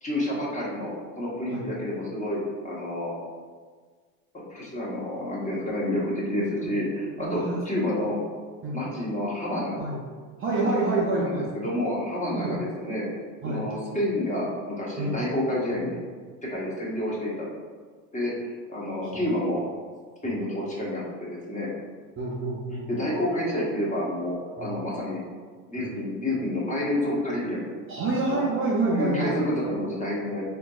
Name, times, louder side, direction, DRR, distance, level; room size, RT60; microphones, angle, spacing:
voice 1, 0.0-3.1 4.3-8.2 8.7-9.8 10.5-13.0 13.4-16.0 16.4-17.5 18.1-18.3 18.7-19.6 20.2-21.7 22.9-25.2 25.7-27.7 28.3-28.4 28.9-30.4, left 1 dB, 15° left, -5 dB, 0.9 m, -29 dB
voice 2, 6.3-6.7 7.2-7.6 8.0-8.1 8.6-8.8 9.8-10.0 10.4-11.5 12.3-12.5 13.4-13.7 15.0-15.2 19.0-19.2 20.2-20.4 22.2-22.9 24.6-24.7 25.7-25.9 27.9-29.4, right 2 dB, 30° right, -5 dB, 0.5 m, -28 dB
3.6 x 2.6 x 2.3 m, 1.5 s
hypercardioid pair, 85°, 46 cm